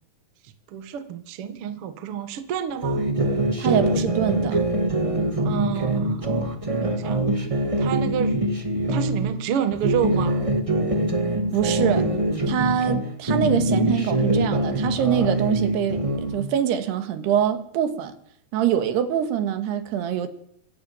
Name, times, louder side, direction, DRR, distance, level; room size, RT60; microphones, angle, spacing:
voice 1, 0.7-3.0 5.4-6.3 6.7-7.4 7.8-8.5 8.9-10.4, right 9 dB, 55° right, 1.6 m, -29 dB
sound 1, 2.8-9.3 9.7-13.0 13.3-16.4, right 1 dB, 30° right, 0.5 m, -23 dB
voice 2, 3.6-4.7 11.5-12.1 12.5-18.1 18.5-20.3, right 9 dB, 85° right, 3.7 m, -24 dB
25.0 x 14.5 x 8.8 m
omnidirectional pair, 4.6 m